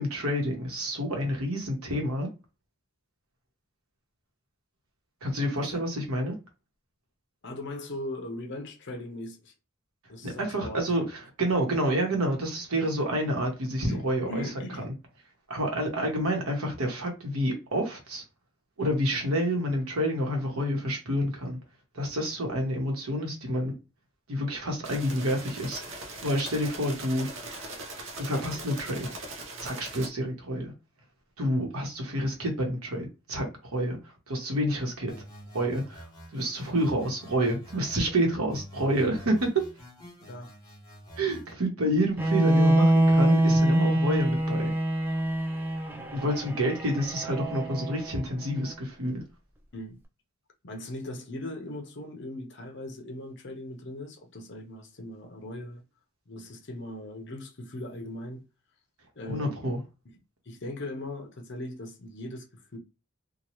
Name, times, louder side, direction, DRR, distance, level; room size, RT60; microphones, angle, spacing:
voice 1, 0.0-2.3 5.2-6.3 10.2-14.4 14.8-14.9 15.5-18.2 18.8-21.6 21.9-23.7 24.3-26.0 26.2-27.3 28.2-29.1 29.6-30.7 31.4-34.0 34.3-35.1 35.5-36.1 36.3-39.5 41.2-44.7 46.1-49.2 59.3-59.8, equal, 90° right, 1.0 m, -28 dB
voice 2, 5.5-5.8 7.4-9.5 10.1-10.8 13.9-14.9 31.8-31.9 40.3-40.5 49.7-50.0 50.6-55.8 56.3-58.4 59.2-59.7 60.5-62.8, left 1 dB, 55° left, 0.7 m, -39 dB
sound 1, 24.8-30.1, right 2 dB, 60° right, 0.6 m, -40 dB
sound 2, 35.1-38.1 38.5-41.5, equal, 15° left, 1.1 m, -47 dB
Bowed string instrument, 42.2-48.2, right 1 dB, 10° right, 0.3 m, -24 dB
2.9 x 2.3 x 2.9 m
head